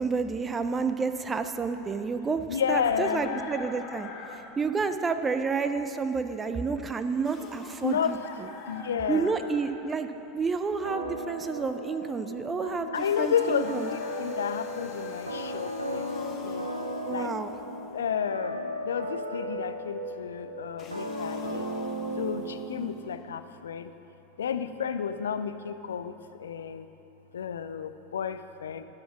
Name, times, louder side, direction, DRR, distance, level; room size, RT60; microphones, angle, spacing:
voice 1, 0.0-2.4 2.7-4.1 4.6-8.2 9.1-10.1 10.3-12.9 13.2-13.9 17.1-17.5, right 5 dB, 20° right, 9 dB, 0.4 m, -29 dB
voice 2, 2.5-3.4 7.8-8.2 8.6-9.4 12.9-16.7 17.1-17.3 17.9-21.7 22.2-23.9 24.4-26.9 27.3-28.8, left 7 dB, 70° left, 10 dB, 0.3 m, -31 dB
Chicken rooster, 2.7-4.6 6.3-6.4 7.9-9.8 13.3-15.2, left 5 dB, 55° left, 0.8 m, -43 dB
sound 1, 7.2-9.2 12.9-18.2 20.8-23.2, left 4 dB, 35° left, 1.0 m, -50 dB
sound 2, 10.9-23.2, equal, 90° right, 0.6 m, -36 dB
12.5 x 4.2 x 6.0 m, 3.0 s
figure-of-eight pair, 80°, 0 cm